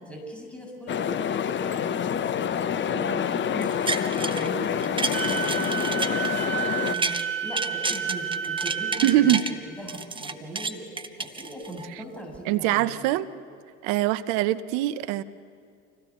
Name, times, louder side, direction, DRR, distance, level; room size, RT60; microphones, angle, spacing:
voice 1, 0.0-2.2 2.7-7.1 7.4-9.4 9.7-10.8 11.2-12.9, right 1 dB, 5° left, 0 dB, 6.6 m, -39 dB
sound 1, 0.9-7.0, left 8 dB, 30° left, 0.9 m, -27 dB
sound 2, 3.6-4.5 4.8-7.2 7.5-9.5 9.9-11.9 12.3-12.4, right 3 dB, 15° right, 1.1 m, -31 dB
Wind instrument woodwind instrument, 5.1-9.2, right 8 dB, 90° right, 2.6 m, -30 dB
voice 2, 9.0-9.4 11.9-12.0 12.5-13.3 13.8-15.2, right 14 dB, 55° right, 15 dB, 0.9 m, -23 dB
27.0 x 16.5 x 7.1 m, 2.3 s
figure-of-eight pair, 70°, 36 cm